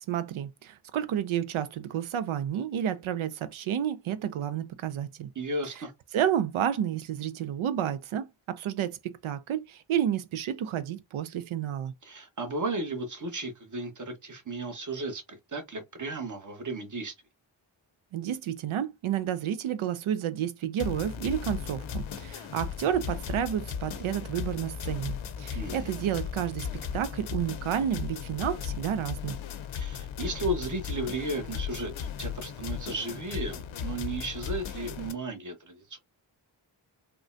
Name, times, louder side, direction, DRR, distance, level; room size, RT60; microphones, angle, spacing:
voice 1, 0.1-5.3 6.1-11.9 18.1-26.7 26.9-29.4, right 10 dB, 80° right, 0.5 m, -30 dB
voice 2, 5.3-5.9 12.0-15.2 15.5-17.1 25.5-25.9 29.7-36.0, right 2 dB, 40° right, 1.1 m, -34 dB
sound 1, 20.8-35.1, left 8 dB, 70° left, 0.7 m, -36 dB
3.6 x 2.2 x 2.5 m
cardioid pair, 45°, 48 cm